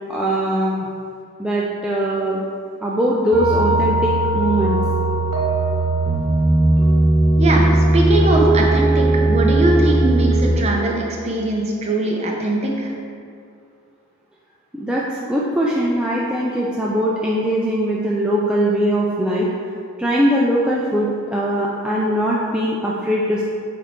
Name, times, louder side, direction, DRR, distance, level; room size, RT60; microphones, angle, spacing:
voice 1, 0.1-0.9 1.4-2.5 2.8-4.8 14.7-19.5 20.0-23.4, equal, 5° right, -6 dB, 0.4 m, -21 dB
sound 1, 3.3-10.5, right 2 dB, 75° right, 1.4 m, -17 dB
voice 2, 7.4-12.9, right 2 dB, 30° right, -1 dB, 0.7 m, -21 dB
8.5 x 3.5 x 3.6 m, 2.3 s
head